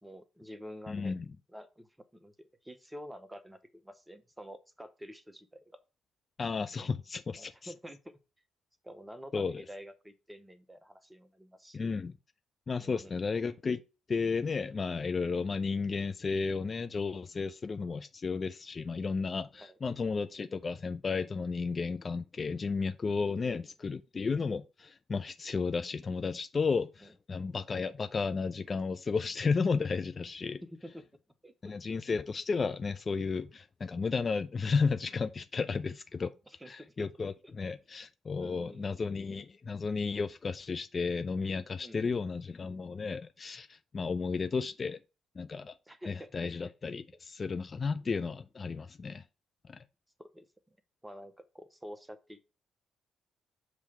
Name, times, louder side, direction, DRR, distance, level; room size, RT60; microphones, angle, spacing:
voice 1, 0.0-1.1 1.5-1.9 2.1-5.8 7.3-8.0 8.8-11.8 12.8-13.1 19.6-19.8 23.2-23.6 27.0-27.1 30.7-31.0 31.4-31.5 36.5-37.1 37.4-37.7 38.4-39.0 41.8-42.2 45.9-46.3 50.2-50.5 51.0-52.4, equal, 10° right, 1.0 m, -48 dB
voice 2, 0.9-1.3 6.4-7.7 9.3-9.6 11.7-12.1 12.7-13.8 14.1-30.6 31.6-36.3 36.7-45.0 45.4-45.7 46.1-49.2 49.7-49.8, left 4 dB, 35° left, 0.4 m, -33 dB
7.1 x 3.2 x 5.7 m
figure-of-eight pair, 40°, 0 cm